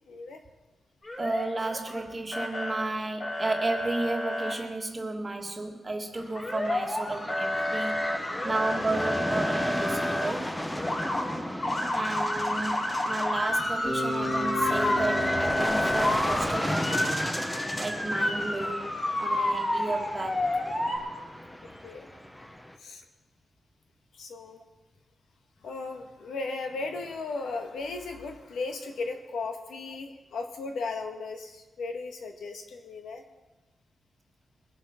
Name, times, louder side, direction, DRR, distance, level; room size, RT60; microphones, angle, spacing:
voice 1, 0.1-0.4 10.9-11.4 21.6-22.1 22.8-23.0 24.1-24.6 25.6-33.2, left 3 dB, 80° left, 4 dB, 1.7 m, -36 dB
Motor vehicle (road) / Siren, 1.0-2.0 2.3-2.8 3.2-4.5 6.3-7.0 7.3-10.3 10.7-11.2 11.6-21.0, left 1 dB, 35° left, 3.8 m, -30 dB
voice 2, 1.2-10.5 11.9-17.4 17.8-20.6, right 2 dB, 25° right, 3 dB, 1.6 m, -33 dB
sound 1, 6.2-22.8, equal, 10° left, 0.9 m, -34 dB
Bass guitar, 13.8-17.9, equal, 55° left, 4.6 m, -36 dB
21.5 x 8.2 x 5.9 m, 1.1 s
wide cardioid pair, 140°, 0 cm